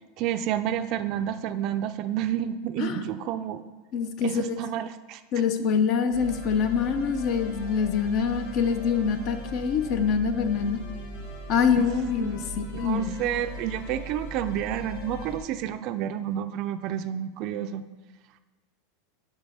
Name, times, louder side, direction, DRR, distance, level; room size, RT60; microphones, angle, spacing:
voice 1, 0.2-3.6 4.2-5.2 11.8-12.4 12.8-17.8, right 10 dB, 50° right, 10 dB, 0.4 m, -30 dB
voice 2, 3.9-4.6 5.3-10.8 11.5-13.1, left 6 dB, 45° left, 9 dB, 0.6 m, -25 dB
speedcore volca, 6.1-15.4, left 2 dB, 65° left, 1.6 m, -39 dB
5.3 x 5.1 x 6.3 m, 1.3 s
supercardioid pair, 135°, 0 cm